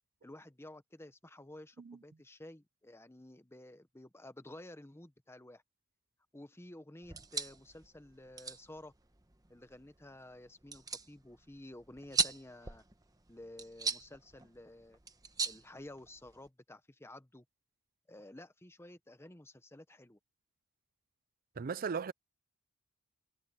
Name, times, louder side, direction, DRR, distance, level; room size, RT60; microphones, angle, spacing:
voice 1, 0.2-5.6 6.3-8.9 9.5-12.8 13.3-15.0 15.4-17.4 18.1-20.2, left 1 dB, 10° left, 1.0 m, -52 dB
sound 1, 7.0-16.5, right 4 dB, 15° right, 1.1 m, -40 dB
voice 2, 21.6-22.1, right 5 dB, 40° right, 0.4 m, -37 dB
head